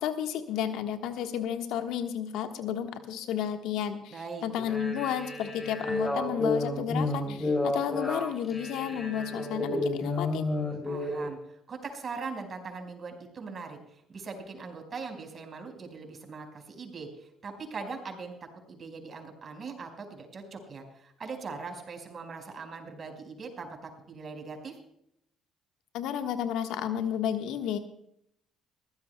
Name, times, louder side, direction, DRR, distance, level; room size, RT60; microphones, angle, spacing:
voice 1, 0.0-4.1 4.4-10.5 25.9-27.8, left 9 dB, 70° left, 7 dB, 1.3 m, -32 dB
voice 2, 4.1-4.4 10.8-18.3 18.7-24.8, right 4 dB, 45° right, 4 dB, 4.8 m, -41 dB
sound 1, 4.6-11.3, left 2 dB, 20° left, 6.8 m, -31 dB
21.5 x 16.0 x 2.2 m, 0.74 s
hypercardioid pair, 55°, 0 cm